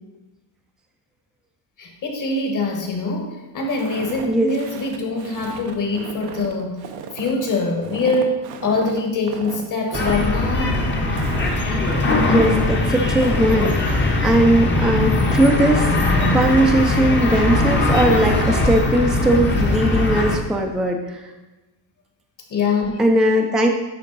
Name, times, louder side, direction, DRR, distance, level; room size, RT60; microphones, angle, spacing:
voice 1, 1.8-6.8 7.1-10.8 11.6-11.8 22.5-22.9, left 3 dB, 40° left, 3 dB, 1.5 m, -24 dB
Walk footsteps, 3.8-13.7, right 7 dB, 90° right, 0.9 m, -35 dB
sound 1, 9.9-20.4, left 2 dB, 25° left, 0.9 m, -20 dB
voice 2, 12.2-15.9 16.3-21.3 23.0-23.7, right 1 dB, ahead, 2 dB, 0.5 m, -19 dB
10.0 x 3.6 x 4.0 m, 1.1 s
cardioid pair, 130°, 47 cm